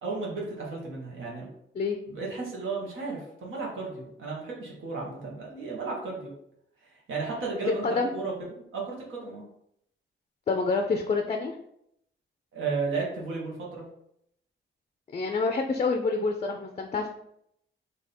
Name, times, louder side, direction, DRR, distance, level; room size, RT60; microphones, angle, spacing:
voice 1, 0.0-1.5 2.1-6.3 6.9-9.4 12.5-13.9, right 4 dB, 85° right, -3 dB, 1.3 m, -34 dB
voice 2, 7.7-8.2 10.5-11.6 15.1-17.1, left 4 dB, 35° left, 4 dB, 0.4 m, -27 dB
3.5 x 2.7 x 4.2 m, 0.75 s
wide cardioid pair, 145°, 20 cm